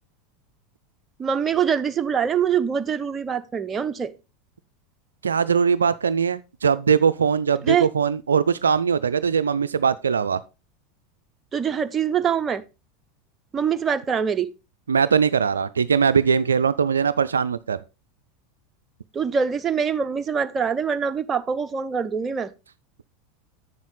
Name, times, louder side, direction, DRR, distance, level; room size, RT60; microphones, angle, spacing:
voice 1, 1.2-4.1 7.6-7.9 11.5-12.6 13.5-14.5 19.1-22.5, right 7 dB, 25° right, 0.8 m, -24 dB
voice 2, 5.2-10.4 14.9-17.8, right 6 dB, 85° right, 0.4 m, -21 dB
8.0 x 7.2 x 3.9 m
figure-of-eight pair, 85°, 0 cm